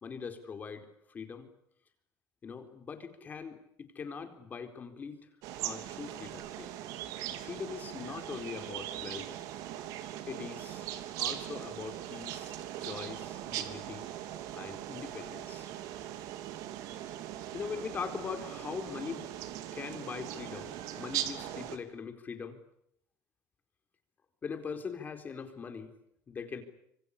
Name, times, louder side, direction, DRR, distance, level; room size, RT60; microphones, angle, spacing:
voice 1, 0.0-1.5 2.4-5.2 5.6-6.7 7.4-9.3 10.3-10.9 11.2-14.1 14.5-15.7 17.5-19.3 19.7-22.6 24.4-25.9 26.3-26.6, left 5 dB, 30° left, 7 dB, 4.3 m, -41 dB
sound 1, 5.4-21.8, right 12 dB, 70° right, 3.2 m, -40 dB
26.5 x 25.0 x 8.6 m, 0.74 s
cardioid pair, 135°, 6 cm